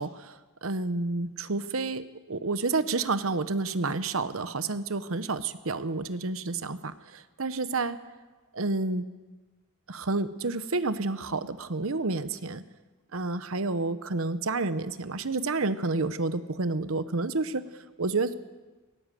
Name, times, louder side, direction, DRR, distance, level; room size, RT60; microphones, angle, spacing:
voice 1, 0.0-8.0 8.5-9.1 9.9-12.6 13.1-17.7 18.0-18.3, right 3 dB, 70° right, 13 dB, 1.0 m, -30 dB
18.5 x 18.0 x 7.7 m, 1.3 s
head